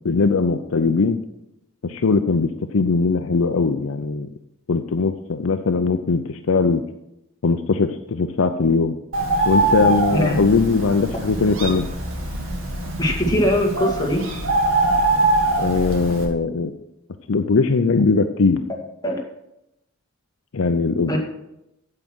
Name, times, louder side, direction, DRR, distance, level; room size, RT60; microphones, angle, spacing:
voice 1, 0.0-1.2 1.8-4.3 4.7-6.8 7.4-9.0 9.5-11.8 15.6-16.7 17.3-18.6 20.5-21.2, left 4 dB, 70° left, 8 dB, 0.6 m, -20 dB
Bird, 9.1-16.2, right 2 dB, 70° right, 2.2 m, -23 dB
voice 2, 13.0-14.3 19.0-19.2 21.1-21.2, equal, 20° left, 0 dB, 2.0 m, -21 dB
8.7 x 7.7 x 6.1 m, 0.86 s
head